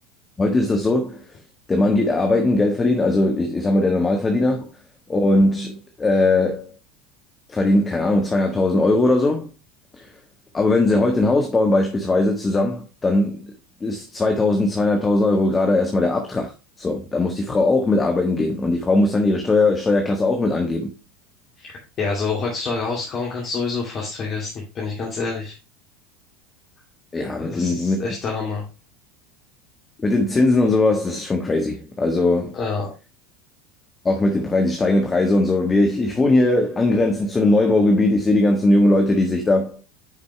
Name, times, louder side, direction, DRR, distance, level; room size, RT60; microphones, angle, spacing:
voice 1, 0.4-1.2 1.7-4.7 5.1-6.7 7.5-9.5 9.9-10.1 10.5-13.5 13.8-16.5 16.8-20.9 27.1-28.0 30.0-32.6 34.0-39.8, left 2 dB, 20° left, 1.5 m, -19 dB
voice 2, 22.0-25.5 27.4-28.7 32.5-32.9, left 4 dB, 40° left, 2.4 m, -27 dB
10.0 x 5.2 x 3.3 m
figure-of-eight pair, 75°, 0 cm